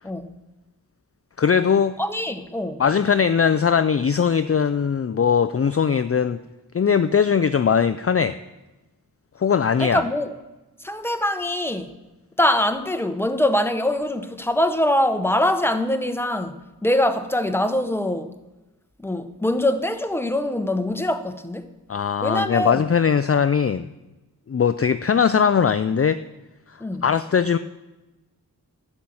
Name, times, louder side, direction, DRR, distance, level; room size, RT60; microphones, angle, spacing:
voice 1, 0.0-0.4 2.0-2.8 9.8-10.3 10.8-12.0 12.4-18.4 19.0-21.7 22.2-22.9 26.8-27.1, left 1 dB, 5° left, 0.9 m, -23 dB
voice 2, 1.4-2.0 2.8-6.4 6.7-8.4 9.4-10.0 21.9-23.9 24.5-26.2 27.0-27.6, left 7 dB, 40° left, 0.4 m, -20 dB
12.0 x 9.0 x 7.1 m
wide cardioid pair, 55°, 38 cm